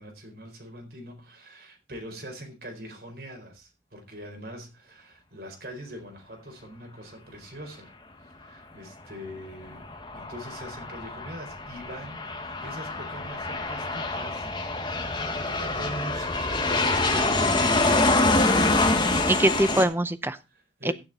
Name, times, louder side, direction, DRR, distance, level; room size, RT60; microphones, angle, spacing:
voice 1, 0.0-7.9 8.2-9.9 10.1-14.5 14.9-17.7 20.5-20.9, equal, 55° right, 4.3 m, -42 dB
Aircraft, 9.6-19.8, left 2 dB, 25° left, 1.5 m, -26 dB
voice 2, 18.4-20.4 20.9-21.0, right 1 dB, 10° right, 0.6 m, -25 dB
16.0 x 7.3 x 4.1 m
head